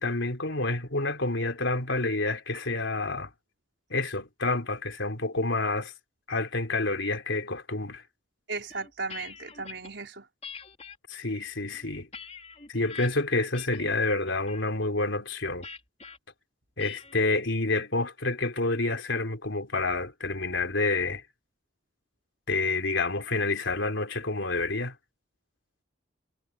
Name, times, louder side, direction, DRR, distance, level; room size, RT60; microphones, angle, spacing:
voice 1, 0.0-3.3 3.9-5.9 6.3-8.0 11.1-12.1 12.7-15.7 16.8-21.2 22.5-25.0, left 2 dB, 80° left, 3.6 m, -28 dB
voice 2, 8.5-10.3, right 3 dB, 65° right, 5.3 m, -36 dB
sound 1, 8.7-9.9 10.4-11.0 11.6-13.1 13.5-13.9 14.3-14.7 15.6-16.2 16.8-17.2, left 6 dB, 35° left, 3.6 m, -44 dB
head